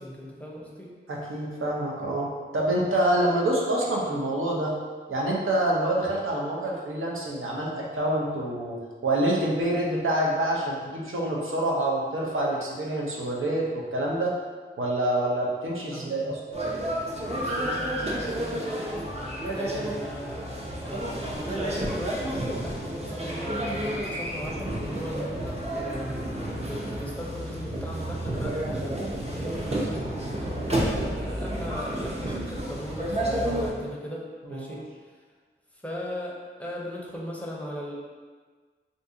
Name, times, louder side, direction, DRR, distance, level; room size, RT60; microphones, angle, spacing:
voice 1, 0.0-0.9 15.9-16.4 17.2-20.5 20.8-34.2 34.5-34.8 35.8-37.9, equal, 5° left, -4 dB, 0.6 m, -38 dB
voice 2, 1.1-4.7 5.1-14.4 14.8-16.4 34.4-34.8, right 1 dB, 75° right, -3 dB, 0.7 m, -27 dB
sound 1, 16.5-33.7, right 1 dB, 30° right, 0.6 m, -31 dB
2.6 x 2.6 x 3.7 m, 1.5 s
wide cardioid pair, 65°, 21 cm